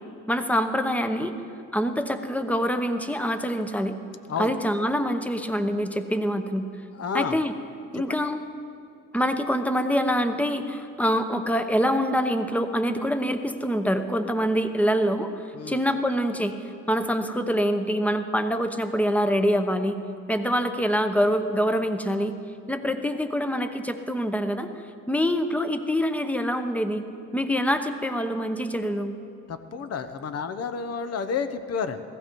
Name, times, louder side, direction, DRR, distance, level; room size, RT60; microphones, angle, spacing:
voice 1, 0.3-1.3 1.7-4.0 4.4-6.7 7.1-7.5 7.9-8.4 9.1-16.5 16.9-20.0 20.3-22.3 22.7-24.7 25.1-27.0 27.3-29.1, equal, 5° left, 9 dB, 0.9 m, -25 dB
voice 2, 7.0-7.4 8.1-8.2 15.5-15.8 29.5-32.0, left 6 dB, 55° left, 10 dB, 0.9 m, -30 dB
15.5 x 15.5 x 4.6 m, 2.5 s
cardioid pair, 90°, 30 cm